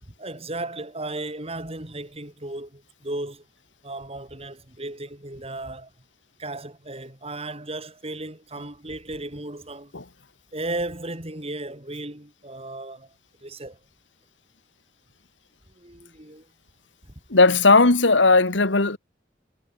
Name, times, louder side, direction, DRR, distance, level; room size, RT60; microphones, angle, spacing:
voice 1, 0.0-3.5 3.8-5.9 6.4-9.9 10.5-13.1 13.4-13.8 15.7-16.5, right 2 dB, 35° right, 5.0 m, -35 dB
voice 2, 17.3-19.0, left 3 dB, 85° left, 1.9 m, -17 dB
head